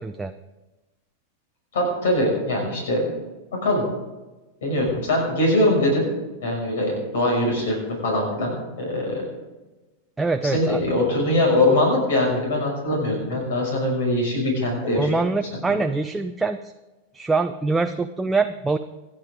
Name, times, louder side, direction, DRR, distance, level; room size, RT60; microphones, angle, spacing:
voice 1, 0.0-0.3 10.2-10.8 14.9-16.7 17.1-18.8, right 3 dB, 10° right, 7 dB, 0.6 m, -24 dB
voice 2, 1.7-3.1 3.5-3.8 4.6-6.1 6.4-9.3 10.4-15.1, left 1 dB, 60° left, 0 dB, 6.1 m, -22 dB
27.0 x 10.0 x 3.7 m, 1.1 s
figure-of-eight pair, 90°, 0 cm